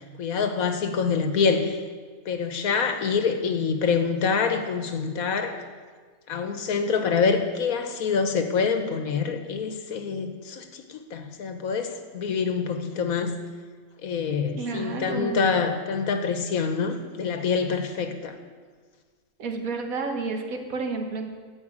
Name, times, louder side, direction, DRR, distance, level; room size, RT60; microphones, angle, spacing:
voice 1, 0.0-1.8 2.3-5.6 6.3-13.4 14.0-18.4, left 5 dB, 85° left, 7 dB, 1.5 m, -26 dB
voice 2, 14.6-15.5 19.4-21.4, right 4 dB, 85° right, 4 dB, 1.7 m, -31 dB
14.0 x 5.2 x 8.6 m, 1.5 s
omnidirectional pair, 1.4 m